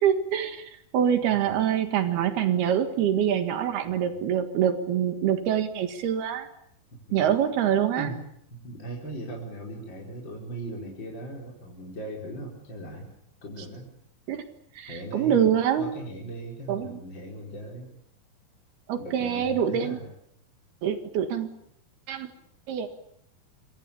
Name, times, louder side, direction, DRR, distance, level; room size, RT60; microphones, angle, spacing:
voice 1, 0.0-6.5 7.1-8.1 14.3-14.4 14.8-15.9 16.7-17.0 18.9-20.0 20.8-21.5 22.1-22.3 22.7-22.9, right 9 dB, 80° right, 8 dB, 3.7 m, -25 dB
voice 2, 8.5-13.1 13.4-13.9 14.9-15.5 15.8-17.9 19.0-20.1, right 1 dB, 30° left, -2 dB, 5.1 m, -38 dB
27.0 x 24.5 x 7.1 m, 0.71 s
omnidirectional pair, 4.5 m